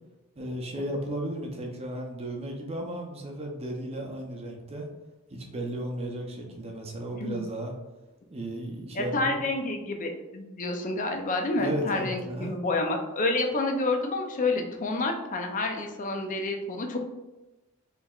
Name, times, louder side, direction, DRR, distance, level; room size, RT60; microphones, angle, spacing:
voice 1, 0.4-4.9 5.3-7.7 8.3-9.4 11.6-12.6, right 1 dB, 30° right, 1 dB, 0.6 m, -34 dB
voice 2, 8.9-17.0, left 2 dB, 35° left, 3 dB, 0.5 m, -29 dB
4.5 x 3.2 x 2.4 m, 1.0 s
head